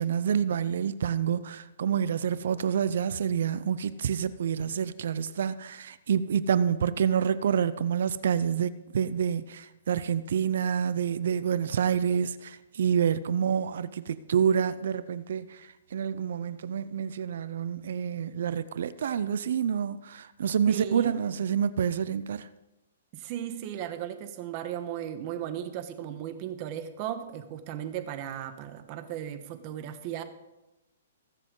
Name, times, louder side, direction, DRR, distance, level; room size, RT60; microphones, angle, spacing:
voice 1, 0.0-22.5, right 8 dB, 65° right, 0.7 m, -28 dB
voice 2, 20.7-21.1 23.1-30.2, right 10 dB, 35° right, 1.3 m, -36 dB
20.5 x 7.6 x 3.9 m
hypercardioid pair, 150°, 0 cm